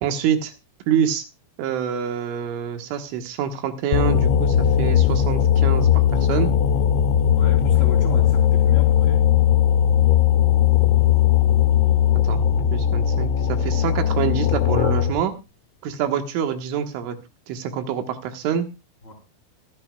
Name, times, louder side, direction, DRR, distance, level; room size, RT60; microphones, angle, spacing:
voice 1, 0.0-0.5 0.9-1.3 1.6-6.0 6.3-6.5 12.3-12.4 12.7-15.3 15.8-17.2 17.5-18.7, right 8 dB, 75° right, 3.7 m, -26 dB
sound 1, 3.9-15.2, left 10 dB, 90° left, 3.8 m, -18 dB
voice 2, 7.3-9.2 19.0-19.1, left 2 dB, 15° left, 2.3 m, -35 dB
24.5 x 10.0 x 2.3 m
omnidirectional pair, 5.8 m